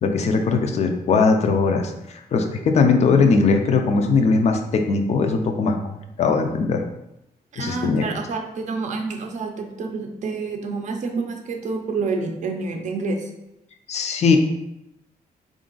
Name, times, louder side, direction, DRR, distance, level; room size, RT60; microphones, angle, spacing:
voice 1, 0.0-6.8 7.6-8.0 13.9-14.4, left 4 dB, 45° left, 5 dB, 0.4 m, -20 dB
voice 2, 7.5-13.3, right 4 dB, 50° right, 4 dB, 0.5 m, -28 dB
3.8 x 2.5 x 3.8 m, 0.87 s
wide cardioid pair, 165°, 16 cm